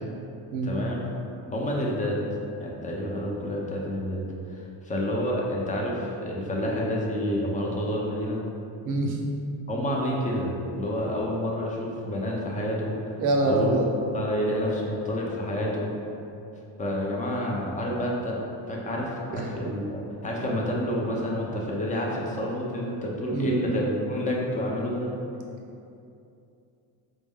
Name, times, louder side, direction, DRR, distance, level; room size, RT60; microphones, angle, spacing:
voice 1, 0.6-1.0 1.5-2.2 2.6-4.2 4.5-8.4 9.7-13.2 13.4-13.8 14.1-15.9 16.8-18.4 18.7-25.1, equal, 20° left, -2 dB, 0.4 m, -29 dB
voice 2, 8.8-9.2 13.2-13.9 19.3-19.5 23.3-23.6, right 2 dB, 45° right, 0 dB, 0.6 m, -25 dB
4.2 x 2.1 x 3.5 m, 2.7 s
cardioid pair, 130°, 42 cm